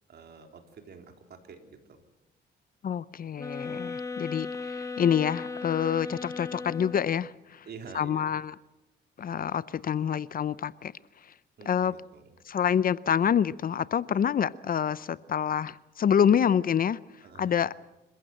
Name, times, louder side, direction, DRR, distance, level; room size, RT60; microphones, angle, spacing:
voice 1, 0.1-2.0 7.6-8.3 11.6-12.4 17.2-17.7, right 5 dB, 55° right, 3.9 m, -48 dB
voice 2, 2.8-7.6 7.9-8.5 9.2-10.9 11.7-11.9 12.5-17.0 17.4-17.7, left 8 dB, 45° left, 0.7 m, -27 dB
sound 1, 3.4-7.3, left 4 dB, 15° left, 1.7 m, -37 dB
26.5 x 15.5 x 7.8 m
cardioid pair, 90°, 20 cm